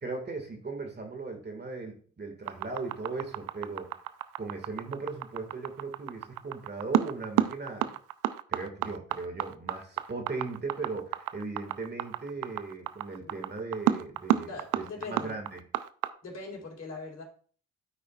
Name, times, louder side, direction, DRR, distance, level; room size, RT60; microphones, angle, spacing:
voice 1, 0.0-3.9 4.4-7.9 8.5-15.6, right 3 dB, 35° right, 4 dB, 1.8 m, -38 dB
sound 1, 2.5-16.1, right 13 dB, 90° right, 0.5 m, -30 dB
voice 2, 14.4-15.4 16.2-17.2, left 3 dB, 55° left, -2 dB, 3.6 m, -41 dB
13.0 x 5.0 x 2.4 m, 0.44 s
cardioid pair, 65°, 31 cm